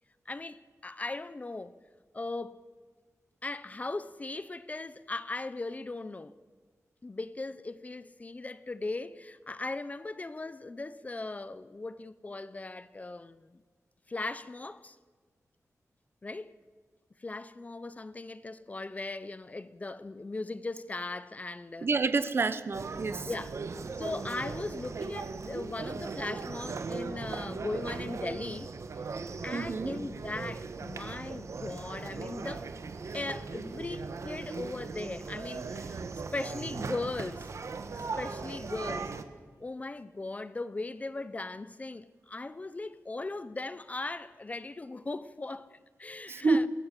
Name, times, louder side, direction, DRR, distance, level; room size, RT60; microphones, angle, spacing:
voice 1, 0.3-1.7 2.1-2.7 3.4-6.4 7.0-13.6 14.1-15.0 16.2-16.5 17.2-21.9 23.3-23.6 24.0-28.7 29.4-32.7 33.1-37.5 37.9-39.1 39.6-46.7, left 2 dB, 25° left, 0.6 m, -38 dB
voice 2, 21.8-23.3 29.5-29.9 46.3-46.7, right 3 dB, 45° right, 1.0 m, -28 dB
sound 1, 22.7-39.2, right 4 dB, 60° right, 1.2 m, -38 dB
23.0 x 16.5 x 7.5 m
wide cardioid pair, 160°, 6 cm